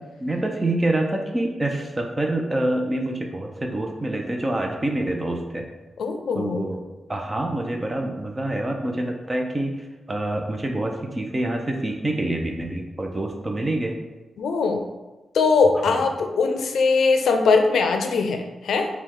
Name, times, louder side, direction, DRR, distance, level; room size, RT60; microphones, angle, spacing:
voice 1, 0.0-5.7 6.3-6.8 7.1-14.0 15.9-16.0, right 1 dB, 25° right, 2 dB, 0.6 m, -26 dB
voice 2, 6.0-6.7 14.4-14.8 15.3-18.9, left 4 dB, 90° left, 5 dB, 0.5 m, -21 dB
4.8 x 2.3 x 3.7 m, 1.1 s
cardioid pair, 90°, 0 cm